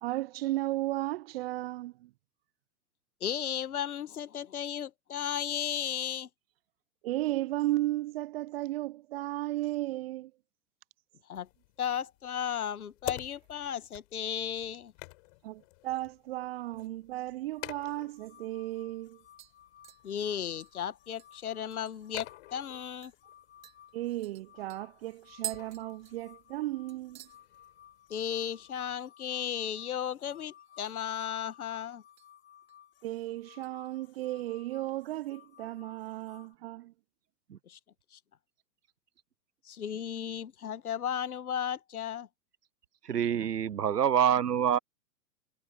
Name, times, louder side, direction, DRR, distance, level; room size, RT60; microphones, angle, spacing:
voice 1, 0.0-2.1 7.0-10.3 15.4-19.2 23.9-27.2 33.0-36.9, right 16 dB, 40° right, 0.8 m, -35 dB
voice 2, 3.2-6.3 11.3-11.5 11.8-14.9 20.0-23.1 28.1-32.0 37.7-37.8 38.1-38.2 39.6-42.3, left 9 dB, 65° left, 1.7 m, -35 dB
sound 1, 11.3-29.0, left 26 dB, 40° left, 5.6 m, -50 dB
sound 2, 17.5-36.5, left 10 dB, 25° left, 3.5 m, -58 dB
sound 3, 18.3-18.4 18.8-19.1 19.4-22.2 22.6-22.7 23.0-23.2 23.6-26.6 26.9-27.4 27.7-28.1 28.4-28.5 30.6-31.2 31.5-32.3 32.7-33.0 33.5-34.4 34.8-34.9, right 11 dB, 55° right, 1.6 m, -47 dB
voice 3, 43.0-44.8, right 8 dB, 85° right, 0.7 m, -26 dB
figure-of-eight pair, 110°, 46 cm